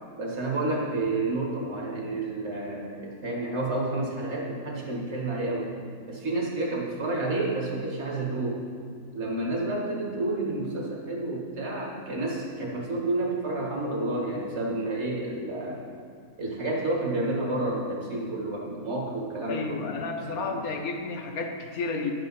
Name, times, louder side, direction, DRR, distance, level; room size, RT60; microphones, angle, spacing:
voice 1, 0.2-5.7 6.1-8.6 9.1-15.8 16.4-19.9 20.2-20.6, right 2 dB, 45° right, -2 dB, 1.8 m, -30 dB
voice 2, 19.5-22.1, left 4 dB, 70° left, 4 dB, 1.3 m, -32 dB
10.5 x 7.4 x 4.1 m, 2.2 s
omnidirectional pair, 1.6 m